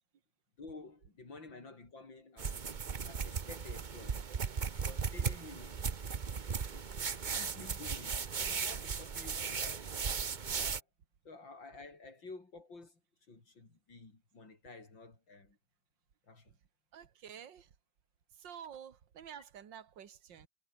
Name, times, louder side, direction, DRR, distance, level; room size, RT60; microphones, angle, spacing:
voice 1, 0.6-2.7 3.0-4.2 4.6-6.1 6.7-7.0 7.3-9.9 10.5-10.9 11.2-13.0 13.3-15.6 16.3-16.6, left 3 dB, 70° left, 5.8 m, -52 dB
sound 1, 2.4-10.8, right 6 dB, 40° right, 0.7 m, -37 dB
voice 2, 16.9-17.7 18.4-20.5, right 8 dB, 65° right, 2.4 m, -50 dB
omnidirectional pair, 2.1 m